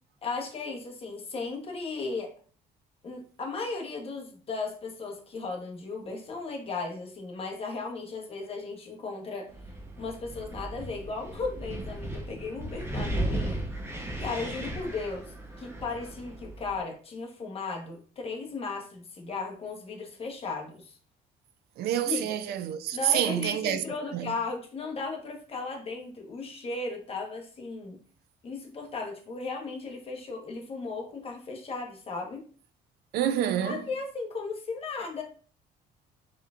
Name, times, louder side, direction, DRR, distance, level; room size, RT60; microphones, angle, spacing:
voice 1, 0.2-2.3 3.0-9.5 10.0-13.6 14.2-21.0 22.0-22.3 22.9-28.0 28.4-32.4 33.6-35.2, left 4 dB, 35° left, 1.1 m, -36 dB
Wind, 9.5-16.8, right 1 dB, 15° right, 0.9 m, -36 dB
voice 2, 21.8-23.8 24.1-24.3 33.1-33.8, right 11 dB, 70° right, 0.4 m, -27 dB
4.3 x 3.6 x 2.4 m
cardioid pair, 110°, 17 cm